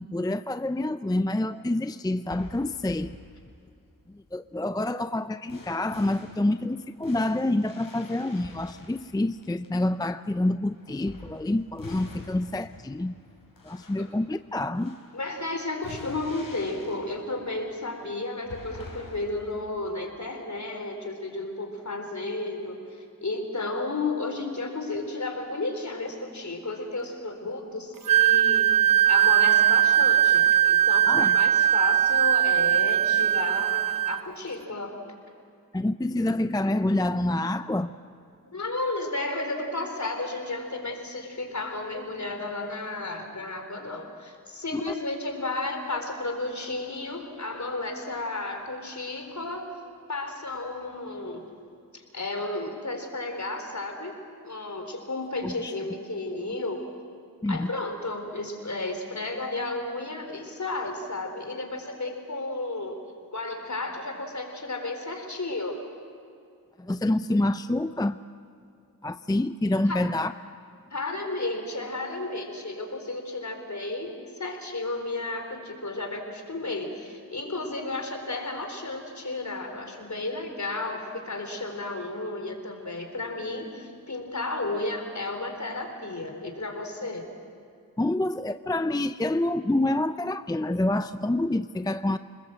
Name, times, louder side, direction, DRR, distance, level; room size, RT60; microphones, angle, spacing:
voice 1, 0.0-3.2 4.1-13.1 13.6-15.0 31.1-31.4 35.7-37.9 44.7-44.8 55.4-55.7 57.4-57.7 66.8-68.2 69.0-70.3 88.0-92.2, left 1 dB, 10° left, 11 dB, 0.5 m, -27 dB
sound 1, 2.2-3.7 5.5-9.9 10.6-19.6, left 3 dB, 85° left, 4.7 m, -46 dB
voice 2, 15.1-28.8 29.1-35.0 38.4-49.7 50.1-51.5 51.9-54.1 54.4-56.8 57.5-63.0 63.3-65.8 69.8-70.0 70.9-87.3, left 2 dB, 55° left, 4 dB, 4.0 m, -33 dB
Wind instrument woodwind instrument, 28.1-34.2, right 11 dB, 75° right, 0.5 m, -20 dB
27.5 x 20.5 x 7.7 m, 2.5 s
wide cardioid pair, 70°, 34 cm